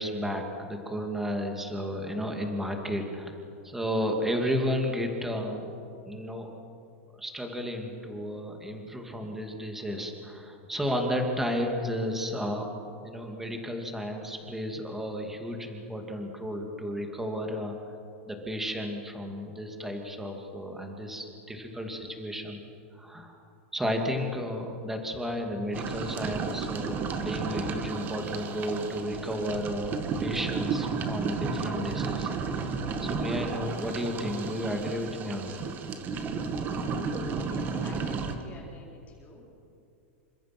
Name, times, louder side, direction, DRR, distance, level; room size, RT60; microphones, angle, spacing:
voice 1, 0.0-5.7 6.1-6.5 7.1-12.7 13.0-17.8 18.3-22.6 22.9-23.4 23.7-32.3 33.0-35.6, equal, 5° right, 3 dB, 2.5 m, -33 dB
sound 1, 25.7-38.3, right 5 dB, 25° right, 2.0 m, -32 dB
voice 2, 37.4-39.5, left 2 dB, 20° left, -2 dB, 4.4 m, -48 dB
28.5 x 25.0 x 6.1 m, 2.5 s
supercardioid pair, 150°, 7 cm